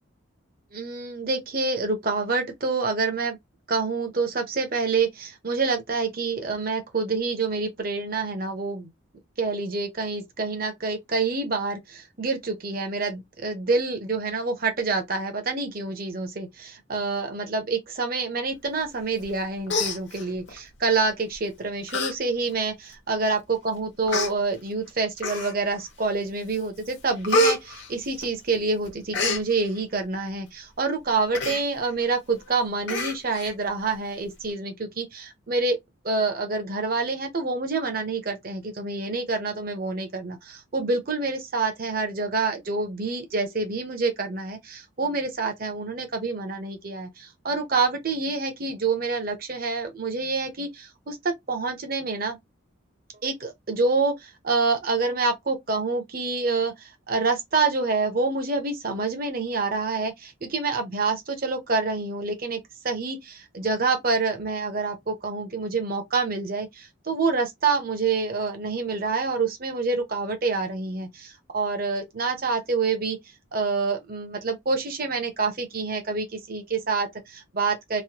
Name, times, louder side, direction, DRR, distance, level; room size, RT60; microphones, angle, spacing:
voice 1, 0.7-3.4 3.7-8.9 9.4-35.8 36.0-52.4 53.2-62.6 62.8-73.2 73.5-78.0, right 4 dB, 45° right, 0.8 m, -27 dB
Human voice, 19.2-19.4 19.7-20.6 21.3-21.5 21.9-22.1 22.5-22.6 23.4-23.5 24.1-24.3 25.2-25.7 26.2-26.6 26.9-28.6 28.8-29.4 31.3-31.6 32.0-32.1 32.4-32.5 32.9-33.5 33.9-34.0, left 1 dB, 55° left, 0.8 m, -27 dB
3.1 x 2.2 x 2.8 m
head